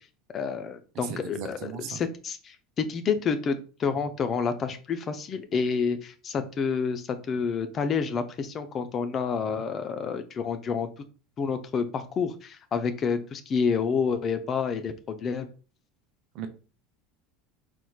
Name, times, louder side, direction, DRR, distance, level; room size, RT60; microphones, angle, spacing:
voice 1, 0.3-10.9 11.4-15.5, left 5 dB, 35° left, 8 dB, 0.6 m, -29 dB
voice 2, 0.9-2.0 16.3-16.5, right 7 dB, 55° right, 8 dB, 0.7 m, -37 dB
4.3 x 4.2 x 2.4 m, 0.36 s
figure-of-eight pair, 75°, 0 cm